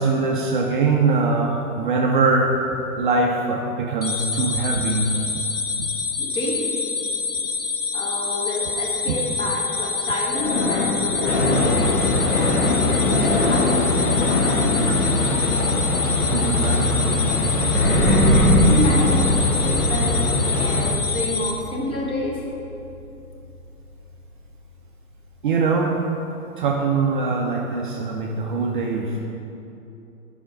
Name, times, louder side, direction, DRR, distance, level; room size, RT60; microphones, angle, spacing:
voice 1, 0.0-5.2 16.3-17.2 25.4-26.0 26.6-29.2, right 3 dB, 35° right, 0 dB, 0.5 m, -22 dB
sound 1, 4.0-21.5, left 5 dB, 30° left, 0.4 m, -27 dB
voice 2, 6.2-6.7 7.9-13.8 18.7-19.3 19.6-22.4, left 1 dB, 10° left, -3 dB, 0.9 m, -29 dB
sound 2, 10.3-16.3 17.7-23.1, left 1 dB, 45° left, 1.7 m, -23 dB
sound 3, 11.3-21.0, left 2 dB, 70° left, 1.1 m, -23 dB
10.0 x 5.1 x 3.8 m, 2.9 s
figure-of-eight pair, 110°, 45 cm